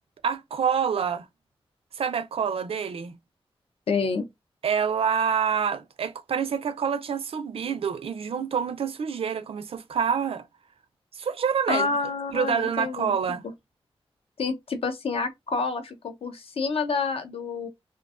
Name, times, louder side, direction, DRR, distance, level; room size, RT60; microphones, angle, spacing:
voice 1, 0.2-1.3 1.9-3.1 4.6-10.4 11.1-11.9 12.3-13.5, right 7 dB, 70° right, 0.4 m, -27 dB
voice 2, 3.9-4.3 11.7-13.1 14.4-17.7, left 4 dB, 70° left, 0.5 m, -28 dB
2.5 x 2.2 x 2.3 m
wide cardioid pair, 130°, 10 cm